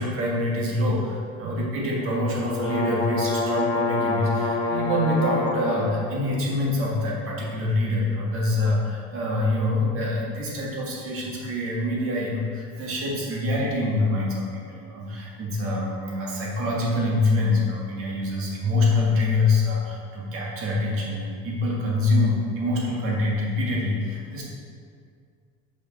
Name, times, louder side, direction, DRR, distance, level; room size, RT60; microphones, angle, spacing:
voice 1, 0.0-24.5, left 2 dB, 45° right, -4 dB, 1.6 m, -25 dB
sound 1, 2.0-5.9, left 3 dB, 15° left, 0.5 m, -26 dB
6.5 x 5.1 x 4.0 m, 2.2 s
cardioid pair, 165°, 32 cm